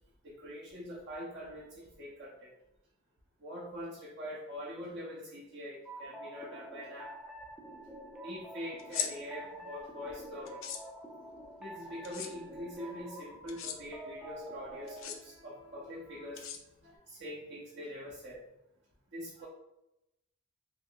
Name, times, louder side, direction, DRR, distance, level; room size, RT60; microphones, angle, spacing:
voice 1, 0.2-2.5 3.4-7.1 8.2-10.6 11.6-16.5 16.8-18.4 19.1-19.5, equal, 55° right, -4 dB, 0.6 m, -44 dB
sound 1, 5.8-15.1, right 1 dB, 5° right, 0.4 m, -48 dB
sound 2, 8.8-9.1 10.5-10.8 12.0-12.3 13.5-13.8 14.9-15.2 16.4-17.0, left 9 dB, 65° left, 0.4 m, -37 dB
3.5 x 3.1 x 2.3 m, 0.88 s
head